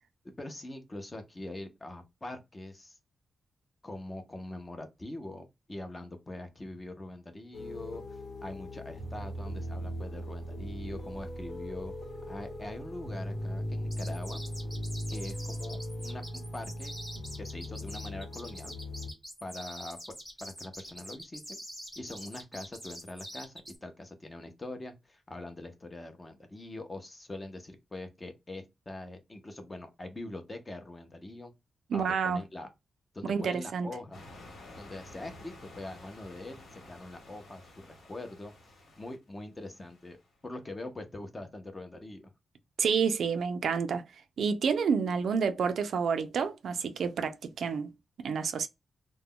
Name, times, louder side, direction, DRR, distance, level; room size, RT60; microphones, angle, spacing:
voice 1, 0.4-3.0 3.8-11.9 12.3-14.4 15.1-16.9 17.4-18.8 19.4-20.0 20.4-21.6 22.0-23.5 23.8-31.5 31.9-32.7 33.1-34.3 34.8-38.5 39.0-40.2 40.4-42.3, left 2 dB, 20° left, 0.5 m, -43 dB
sound 1, 7.5-19.1, equal, 60° left, 1.0 m, -39 dB
sound 2, 13.9-23.8, equal, 5° left, 1.0 m, -45 dB
voice 2, 31.9-32.4 33.2-33.9 42.8-44.0 44.4-47.9 48.2-48.7, right 6 dB, 75° right, 0.3 m, -29 dB
sound 3, 34.1-40.3, left 1 dB, 80° left, 1.2 m, -52 dB
2.2 x 2.1 x 3.5 m
wide cardioid pair, 165°, 0 cm